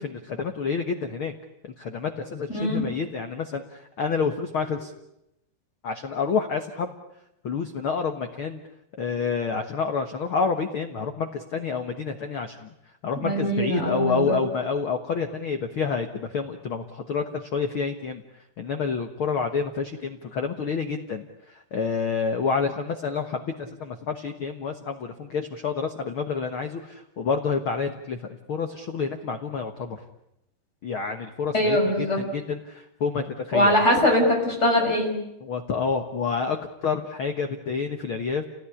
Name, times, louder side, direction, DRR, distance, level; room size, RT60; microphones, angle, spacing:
voice 1, 0.0-1.3 1.6-4.9 5.8-6.9 7.4-8.6 9.0-12.7 13.0-30.0 30.8-33.8 35.4-38.4, left 5 dB, 85° left, 6 dB, 1.1 m, -28 dB
voice 2, 2.5-2.9 13.2-14.4 31.5-32.2 33.5-35.2, equal, 15° left, 1 dB, 6.2 m, -22 dB
29.5 x 18.0 x 9.9 m, 0.86 s
omnidirectional pair, 4.6 m